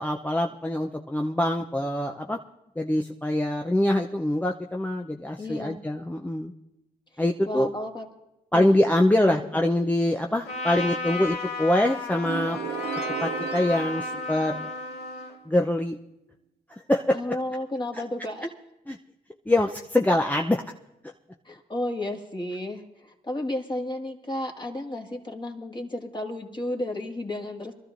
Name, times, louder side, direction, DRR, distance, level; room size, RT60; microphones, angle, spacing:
voice 1, 0.0-2.4 2.8-6.5 7.2-7.7 8.5-12.6 13.2-14.7 15.5-16.0 16.9-17.4 18.9-19.0 19.5-20.6, left 1 dB, 10° left, 1 dB, 0.6 m, -24 dB
voice 2, 5.4-5.8 7.5-8.1 8.5-8.7 9.1-9.4 17.1-18.5 21.5-27.7, left 1 dB, 25° left, 2 dB, 1.9 m, -32 dB
Trumpet, 10.4-15.4, left 2 dB, 80° left, 2.3 m, -33 dB
sound 1, 12.2-15.1, right 9 dB, 75° right, 0.6 m, -35 dB
23.5 x 13.0 x 2.6 m, 0.93 s
supercardioid pair, 55°, 17 cm